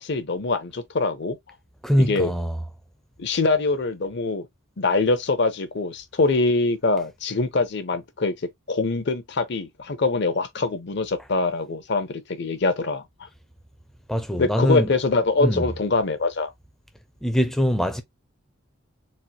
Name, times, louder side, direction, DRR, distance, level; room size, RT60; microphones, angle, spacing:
voice 1, 0.0-1.4 2.1-2.3 3.2-4.5 4.8-8.3 8.7-13.0 14.4-16.5, left 3 dB, 50° left, 0.6 m, -24 dB
voice 2, 1.8-2.6 14.1-14.9 15.4-15.6 17.2-18.0, equal, ahead, 0.5 m, -22 dB
4.1 x 2.1 x 2.8 m
head